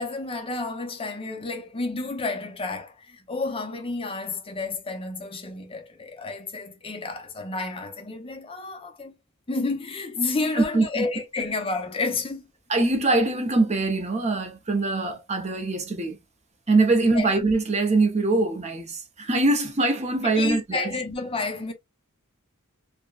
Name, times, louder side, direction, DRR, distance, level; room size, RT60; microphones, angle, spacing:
voice 1, 0.0-9.1 9.5-12.5 17.1-17.3 20.2-21.7, left 3 dB, 25° left, 0.6 m, -30 dB
voice 2, 10.6-11.1 12.7-16.2 16.7-20.9, right 2 dB, 30° right, 0.6 m, -23 dB
5.1 x 2.1 x 2.3 m
head